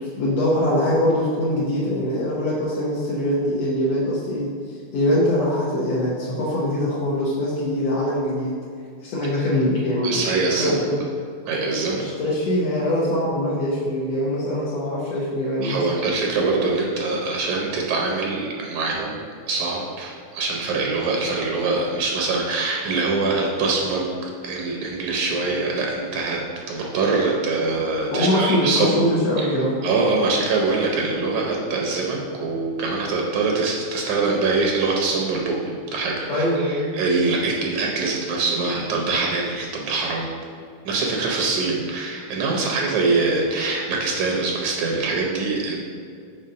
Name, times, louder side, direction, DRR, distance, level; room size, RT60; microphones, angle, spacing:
voice 1, 0.0-4.5 4.9-8.5 9.0-10.2 10.6-11.0 12.0-15.8 28.1-29.8 36.3-36.9, left 1 dB, 70° left, -7 dB, 1.8 m, -23 dB
voice 2, 10.0-10.8 11.5-12.0 15.6-26.4 26.7-29.1 29.4-29.5 29.8-40.3 40.9-45.8, right 3 dB, 75° right, -1 dB, 2.0 m, -24 dB
5.6 x 4.0 x 5.1 m, 2.3 s
omnidirectional pair, 3.5 m